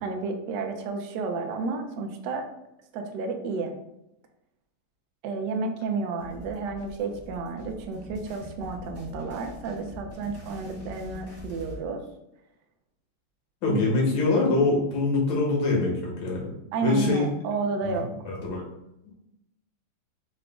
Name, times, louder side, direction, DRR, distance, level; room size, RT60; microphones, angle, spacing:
voice 1, 0.0-2.5 2.9-3.8 5.2-12.0 13.7-13.8 16.7-18.1, right 4 dB, 80° right, 4 dB, 0.9 m, -31 dB
sound 1, 6.2-11.8, left 1 dB, 10° left, 0.7 m, -44 dB
voice 2, 13.6-16.5 16.8-17.3 17.8-17.9 18.2-18.6, left 3 dB, 65° left, -2 dB, 1.7 m, -24 dB
3.9 x 2.4 x 3.4 m, 0.85 s
omnidirectional pair, 2.4 m